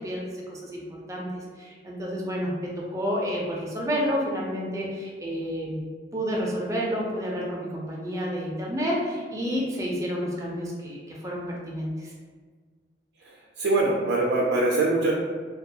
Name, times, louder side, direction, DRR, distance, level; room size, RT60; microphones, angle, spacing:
voice 1, 0.0-5.8 6.1-12.1, equal, 20° right, -3 dB, 0.4 m, -30 dB
voice 2, 13.6-15.1, right 2 dB, 85° right, -3 dB, 0.4 m, -22 dB
2.3 x 2.2 x 2.7 m, 1.5 s
head